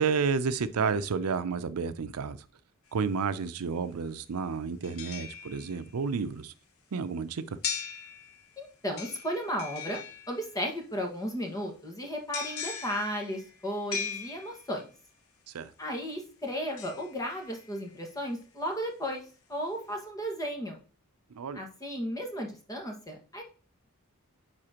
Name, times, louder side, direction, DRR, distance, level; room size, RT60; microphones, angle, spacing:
voice 1, 0.0-2.4 2.9-6.5 6.9-7.6 15.5-15.7 21.3-21.6, right 5 dB, 90° right, 0.5 m, -31 dB
sound 1, 2.9-3.0 4.8-6.0 7.6-8.6 9.0-10.7 12.3-14.9 16.8-17.9 18.4-18.5, left 7 dB, 70° left, 1.0 m, -39 dB
voice 2, 8.6-14.9 15.8-19.2 19.5-20.8 21.5-23.4, equal, 15° left, 1.6 m, -34 dB
9.8 x 4.3 x 2.9 m
head